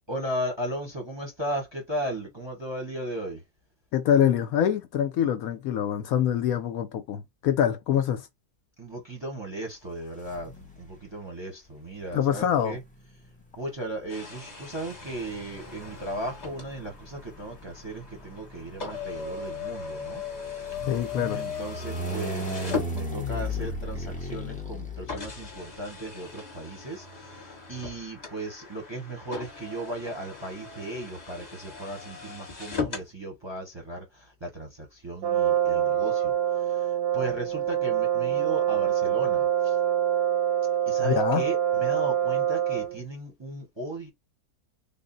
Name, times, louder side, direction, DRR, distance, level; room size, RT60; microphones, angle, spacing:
voice 1, 0.1-3.4 8.8-12.8 13.6-20.2 21.3-39.8 40.9-44.1, right 1 dB, 20° right, 0.8 m, -36 dB
voice 2, 3.9-8.3 12.1-12.8 20.9-21.4 41.0-41.4, left 9 dB, 70° left, 1.0 m, -25 dB
sound 1, 10.2-11.0 12.0-25.7, left 1 dB, 10° left, 0.3 m, -37 dB
sound 2, 14.1-23.6 24.3-24.4 25.1-33.1, left 5 dB, 30° left, 1.0 m, -38 dB
Brass instrument, 35.2-43.0, right 10 dB, 80° right, 1.2 m, -25 dB
3.7 x 2.0 x 3.8 m
omnidirectional pair, 1.7 m